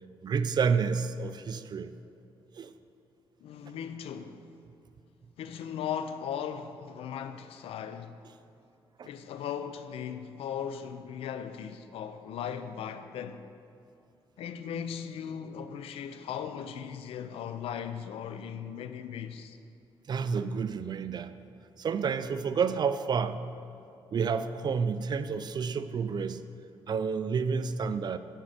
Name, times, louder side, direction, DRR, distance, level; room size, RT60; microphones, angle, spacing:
voice 1, 0.2-1.9 2.6-2.7 9.0-9.1 20.1-21.3 21.8-23.4 24.1-26.4 26.9-28.2, right 6 dB, 45° right, 0.4 m, -29 dB
voice 2, 3.4-4.5 5.4-8.2 9.0-13.4 14.4-19.6, left 8 dB, 80° left, 0.5 m, -38 dB
8.9 x 5.3 x 5.0 m
cardioid pair, 85°, 10 cm